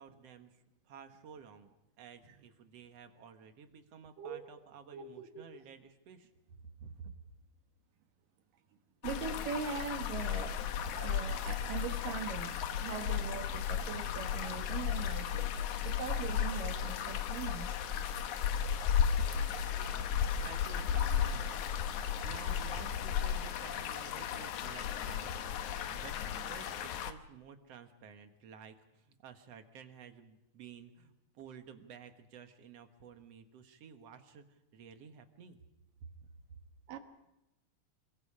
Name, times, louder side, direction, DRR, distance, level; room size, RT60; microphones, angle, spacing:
voice 1, 0.0-6.3 6.8-7.1 19.1-21.6 22.2-25.6 25.9-35.6 36.0-36.1 36.5-36.6, right 6 dB, 55° right, 7 dB, 2.1 m, -52 dB
voice 2, 4.9-5.4 9.0-10.6 10.9-15.5 15.8-17.8 36.9-37.0, right 6 dB, 70° right, 6 dB, 3.1 m, -41 dB
sound 1, 9.0-27.1, left 8 dB, 65° left, 2.2 m, -34 dB
28.5 x 22.0 x 5.0 m, 0.91 s
omnidirectional pair, 4.2 m